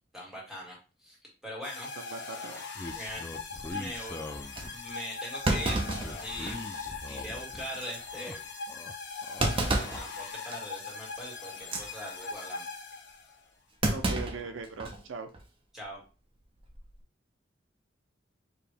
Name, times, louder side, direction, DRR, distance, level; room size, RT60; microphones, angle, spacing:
voice 1, 0.1-1.2 1.4-1.9 2.9-3.3 3.7-4.2 4.7-6.7 7.0-8.4 9.7-12.6 15.7-16.0, equal, ahead, -4 dB, 1.8 m, -41 dB
sound 1, 1.6-13.4, left 4 dB, 60° left, 1.1 m, -41 dB
voice 2, 2.0-2.6 13.9-15.3, right 4 dB, 85° right, 8 dB, 0.6 m, -39 dB
sound 2, 2.7-4.9 5.7-7.7 8.0-8.9 9.2-10.0, left 2 dB, 15° left, 0.3 m, -43 dB
Thump thud, 3.9-4.0 4.6-4.7 5.4-6.8 7.2-7.3 7.7-8.0 9.4-10.1 10.5-10.8 11.6-11.9 13.8-15.0 15.3-15.4 16.6-16.9, right 2 dB, 30° right, 0.7 m, -30 dB
4.8 x 2.9 x 3.3 m, 0.34 s
head